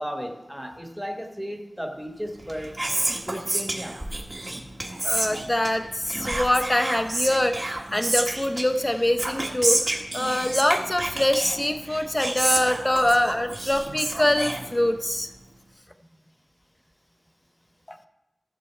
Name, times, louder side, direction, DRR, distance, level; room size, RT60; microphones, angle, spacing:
voice 1, 0.0-2.8 3.3-4.0, equal, ahead, 2 dB, 1.2 m, -34 dB
Whispering, 2.3-15.2, right 1 dB, 35° right, 1.5 m, -30 dB
voice 2, 5.0-15.3 17.9-18.0, left 1 dB, 20° left, 7 dB, 0.8 m, -24 dB
14.5 x 6.8 x 4.4 m, 1.0 s
wide cardioid pair, 85°, 0 cm